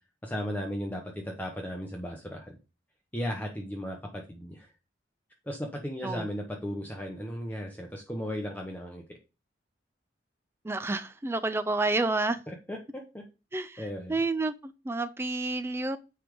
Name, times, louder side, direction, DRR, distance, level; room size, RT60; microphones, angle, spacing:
voice 1, 0.2-2.6 3.1-4.7 5.4-9.2 12.5-13.2 13.8-14.1, equal, 10° left, 0.9 m, -36 dB
voice 2, 10.6-12.4 13.5-13.8 14.1-16.0, right 2 dB, 15° right, 0.3 m, -29 dB
9.7 x 3.4 x 5.0 m
head